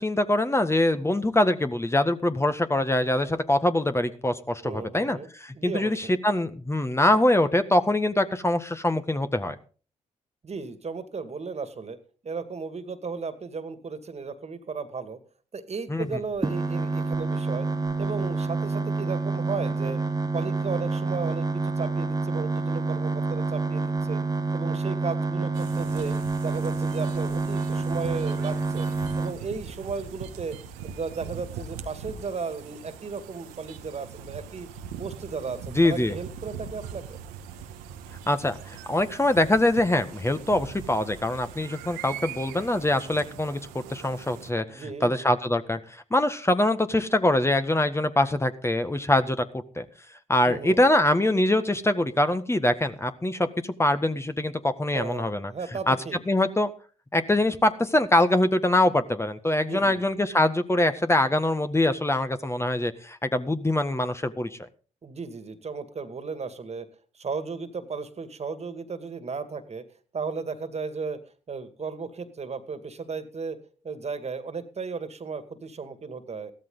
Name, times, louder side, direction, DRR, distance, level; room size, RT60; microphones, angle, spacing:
voice 1, 0.0-9.5 15.9-16.1 35.7-36.1 38.3-43.6 43.9-49.4 49.8-49.9 50.3-55.5 55.9-56.0 56.3-56.7 57.1-64.6, left 1 dB, 15° left, 9 dB, 1.6 m, -24 dB
voice 2, 4.6-5.3 5.5-6.1 10.4-12.0 12.2-15.2 15.5-17.7 18.0-20.0 20.3-24.2 24.5-26.1 26.4-28.9 29.2-30.6 30.8-34.7 35.0-37.2 44.7-45.1 50.4-50.8 54.9-56.2 59.6-60.1 65.0-66.9 67.1-69.8 70.1-71.2 71.5-73.6 73.8-76.5, right 5 dB, 45° right, 11 dB, 2.3 m, -35 dB
sound 1, 16.4-29.3, right 3 dB, 25° right, 1.5 m, -28 dB
sound 2, 25.5-44.5, right 7 dB, 80° right, 1.3 m, -42 dB
15.5 x 13.0 x 3.9 m, 0.38 s
hypercardioid pair, 45°, 16 cm